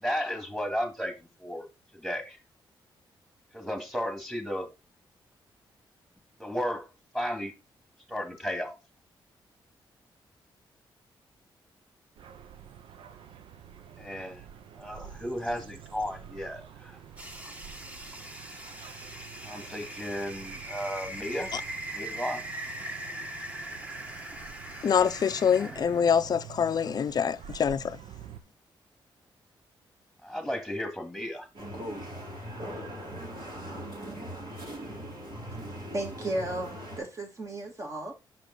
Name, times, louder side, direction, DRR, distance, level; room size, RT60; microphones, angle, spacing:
voice 1, 0.0-1.1 1.4-1.7 1.9-2.4 3.5-4.7 6.4-6.9 7.1-7.5 8.1-8.8 14.0-14.4 14.8-17.0 19.4-21.5 21.9-22.4 30.2-31.5, equal, ahead, 2.0 m, -34 dB
sound 1, 12.2-28.4, right 9 dB, 85° right, 0.7 m, -48 dB
sound 2, 17.2-26.1, right 1 dB, 15° right, 1.4 m, -41 dB
voice 2, 24.8-28.0, left 7 dB, 50° left, 0.5 m, -25 dB
sound 3, 31.6-37.0, equal, 65° right, 3.6 m, -40 dB
voice 3, 35.9-38.1, right 1 dB, 35° right, 2.2 m, -34 dB
5.9 x 5.2 x 3.8 m
cardioid pair, 85°, 9 cm